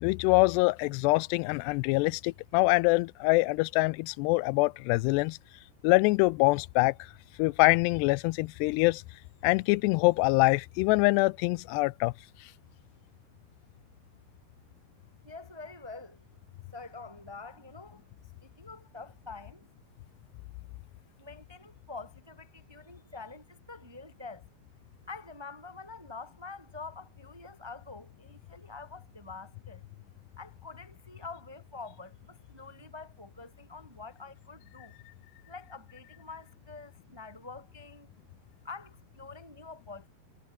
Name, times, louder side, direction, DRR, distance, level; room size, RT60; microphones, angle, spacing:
voice 1, 0.0-5.4 5.8-6.9 7.4-9.0 9.4-12.1, left 24 dB, 90° left, 2.7 m, -24 dB
voice 2, 15.2-16.2 16.7-18.0 18.4-19.6 21.2-24.4 25.1-29.8 30.4-35.0 35.5-38.1 38.6-40.1, left 4 dB, 10° right, 1.5 m, -46 dB
omnidirectional pair, 4.7 m